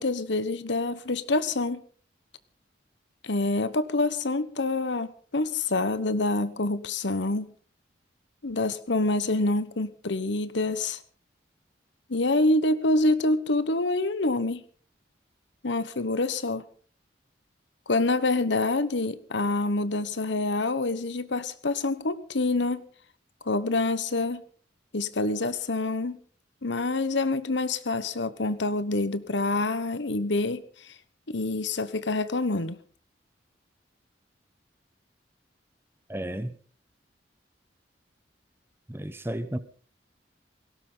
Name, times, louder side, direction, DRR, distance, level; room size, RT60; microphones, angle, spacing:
voice 1, 0.0-1.8 3.2-7.5 8.4-11.0 12.1-14.6 15.6-16.6 17.9-22.8 23.4-24.4 24.9-26.2 26.6-30.9 31.3-32.8, left 2 dB, 75° left, 14 dB, 1.2 m, -26 dB
voice 2, 36.1-36.6 38.9-39.6, right 1 dB, 15° right, 12 dB, 1.0 m, -32 dB
18.5 x 16.5 x 4.0 m, 0.43 s
head